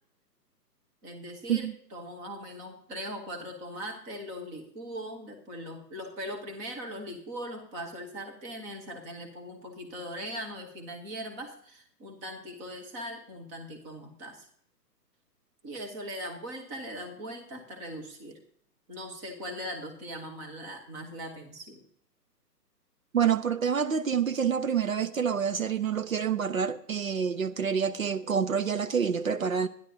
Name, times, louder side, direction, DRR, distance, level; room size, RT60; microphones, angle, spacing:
voice 1, 1.0-14.5 15.6-18.4 18.9-21.8, equal, 10° right, 0.9 m, -40 dB
voice 2, 23.1-29.7, right 7 dB, 55° right, 0.8 m, -27 dB
23.0 x 10.5 x 2.7 m
figure-of-eight pair, 130°, 49 cm